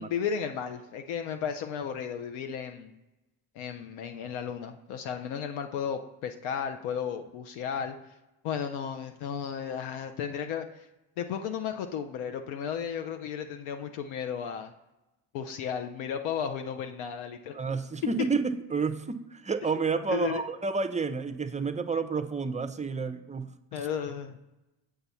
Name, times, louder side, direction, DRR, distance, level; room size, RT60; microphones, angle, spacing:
voice 1, 0.0-2.9 3.5-8.0 8.4-10.9 11.2-14.7 15.3-17.6 20.1-20.4 23.7-24.4, left 7 dB, 75° left, 6 dB, 0.6 m, -34 dB
voice 2, 17.5-23.5, right 4 dB, 15° right, 10 dB, 0.4 m, -30 dB
6.9 x 3.5 x 5.5 m, 1.0 s
supercardioid pair, 60°, 49 cm